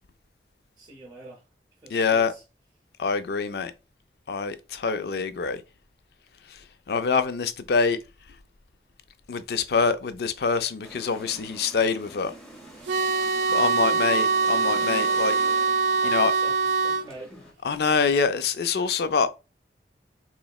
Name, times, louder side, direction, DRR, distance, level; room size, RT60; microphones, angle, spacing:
voice 1, 0.8-1.5 1.8-2.4 13.8-14.4 16.0-17.8, right 2 dB, 20° right, 0.6 m, -46 dB
voice 2, 1.9-2.3 3.0-3.7 4.3-5.6 6.9-8.0 9.3-12.3 13.5-15.3 16.0-16.3 17.6-19.3, left 5 dB, 65° left, 0.4 m, -25 dB
sound 1, 10.8-17.5, right 1 dB, 5° left, 0.8 m, -45 dB
sound 2, 12.9-17.1, right 4 dB, 85° right, 0.4 m, -23 dB
3.8 x 3.0 x 2.3 m
head